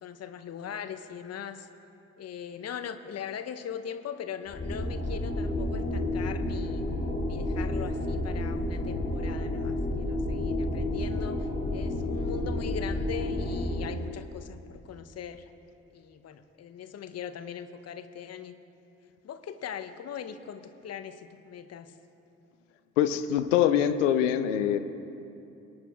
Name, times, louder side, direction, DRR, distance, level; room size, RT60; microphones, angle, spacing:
voice 1, 0.0-1.7 2.2-6.9 7.3-15.5 15.9-18.5 19.2-22.0, left 8 dB, 40° left, 9 dB, 0.9 m, -40 dB
sound 1, 4.5-13.8, left 1 dB, 25° left, 2.8 m, -30 dB
voice 2, 23.0-24.8, left 10 dB, 75° left, 10 dB, 0.6 m, -24 dB
24.5 x 10.5 x 2.4 m, 2.8 s
figure-of-eight pair, 45°, 37 cm